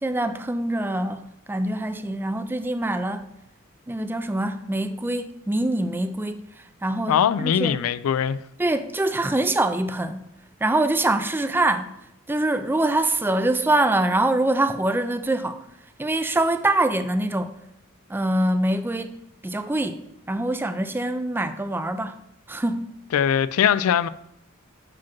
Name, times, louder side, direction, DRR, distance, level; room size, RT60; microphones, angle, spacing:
voice 1, 0.0-3.3 3.9-6.5 6.8-7.8 8.6-10.3 10.6-11.9 12.3-15.6 16.0-17.5 18.1-19.2 19.4-20.0 20.3-22.2 22.5-22.9, right 1 dB, 10° right, 0.3 m, -24 dB
voice 2, 7.1-8.4 23.1-24.1, left 8 dB, 80° left, 0.3 m, -21 dB
5.9 x 4.9 x 5.9 m
head